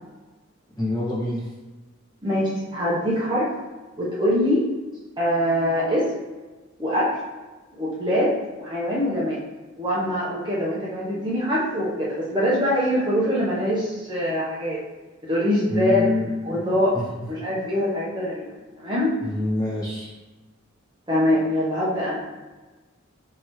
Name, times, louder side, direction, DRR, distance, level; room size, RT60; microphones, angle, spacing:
voice 1, 0.8-1.5 15.7-16.3 16.9-17.3 19.2-20.1, left 2 dB, 20° left, -8 dB, 1.4 m, -26 dB
voice 2, 2.2-3.5 4.0-4.6 5.2-6.1 6.8-7.1 7.8-8.3 8.6-9.4 9.8-14.8 15.2-16.1 16.4-16.9 17.3-19.1 21.1-22.3, equal, 25° right, -7 dB, 0.8 m, -23 dB
4.6 x 3.3 x 3.0 m, 1.2 s
head